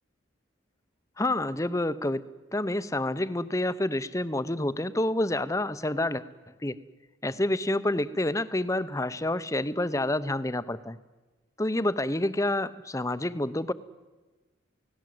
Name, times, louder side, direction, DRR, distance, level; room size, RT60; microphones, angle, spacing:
voice 1, 1.2-2.2 2.5-6.2 6.6-6.8 7.2-11.0 11.6-13.7, left 1 dB, 15° left, 13 dB, 0.8 m, -28 dB
29.0 x 18.0 x 7.9 m, 1.2 s
head